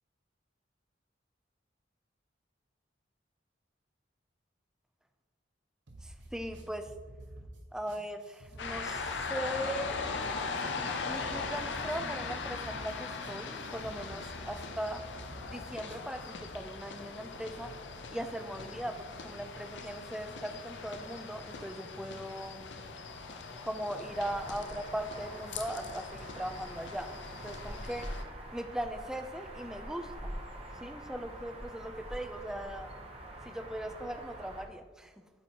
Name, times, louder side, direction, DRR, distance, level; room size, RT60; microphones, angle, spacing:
sound 1, 5.9-16.5, right 1 dB, 80° right, 1.1 m, -50 dB
voice 1, 6.0-6.9 7.7-10.0 11.0-15.0 15.5-17.7 18.1-22.7 23.6-27.2 27.4-28.1 28.5-30.4 30.8-32.9 33.5-35.1, right 1 dB, 5° right, 7 dB, 0.3 m, -39 dB
sound 2, 8.6-28.2, left 4 dB, 70° left, 0.6 m, -40 dB
sound 3, 24.0-34.7, right 1 dB, 35° right, 0.9 m, -45 dB
8.8 x 4.3 x 2.8 m, 1.4 s
head